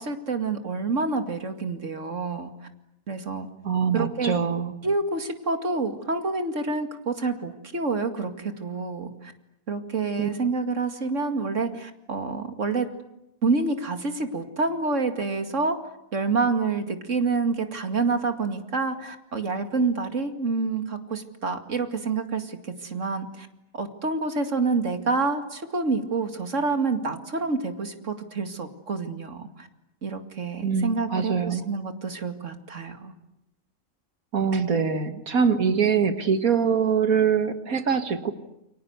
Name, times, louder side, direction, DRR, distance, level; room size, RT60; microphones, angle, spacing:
voice 1, 0.0-2.5 3.1-3.5 3.9-4.4 4.8-9.3 9.7-12.9 13.4-15.8 16.1-23.5 23.7-29.7 30.0-33.1, right 4 dB, 55° right, 7 dB, 2.6 m, -28 dB
voice 2, 3.6-4.7 10.2-10.3 30.6-31.6 34.3-38.3, right 6 dB, 75° right, 8 dB, 2.2 m, -23 dB
29.5 x 23.5 x 8.1 m, 0.83 s
omnidirectional pair, 1.5 m